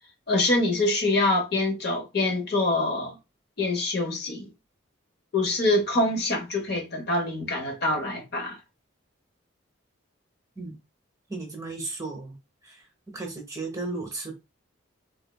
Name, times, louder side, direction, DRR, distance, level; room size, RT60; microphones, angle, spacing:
voice 1, 0.3-3.2 3.6-4.5 5.3-8.6, left 2 dB, 50° left, 0.8 m, -25 dB
voice 2, 11.3-12.4 12.6-12.8 13.1-14.3, right 3 dB, 15° right, 0.8 m, -35 dB
3.5 x 3.2 x 2.2 m
head